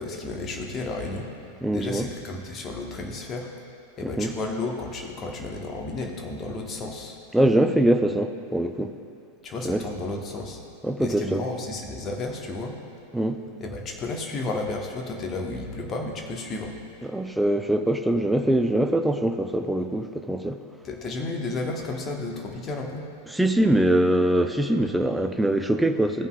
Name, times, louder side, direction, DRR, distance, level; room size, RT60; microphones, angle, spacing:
voice 1, 0.0-1.5 1.7-3.5 4.0-7.2 9.4-10.6 11.0-12.7 13.6-16.7 20.8-23.1, left 2 dB, 25° left, 1 dB, 1.1 m, -32 dB
voice 2, 1.6-2.1 4.2-4.3 7.3-8.9 9.6-9.8 10.8-11.4 13.1-13.4 17.0-20.6 23.3-26.3, right 1 dB, 5° right, 7 dB, 0.4 m, -23 dB
16.5 x 5.4 x 2.4 m, 2.4 s
figure-of-eight pair, 90°, 0 cm